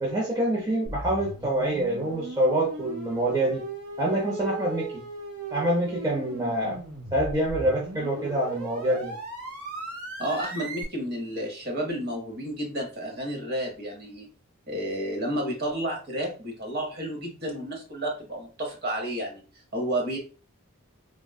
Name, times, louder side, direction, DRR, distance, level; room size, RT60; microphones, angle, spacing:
voice 1, 0.0-3.6 4.0-5.0 5.5-6.8 7.1-9.1, right 1 dB, 15° right, -4 dB, 0.6 m, -26 dB
sound 1, 0.8-10.8, right 2 dB, 85° right, 1.0 m, -38 dB
voice 2, 10.2-14.3 14.7-19.4 19.7-20.2, right 1 dB, 45° right, 1 dB, 0.9 m, -31 dB
3.5 x 2.2 x 2.3 m, 0.36 s
head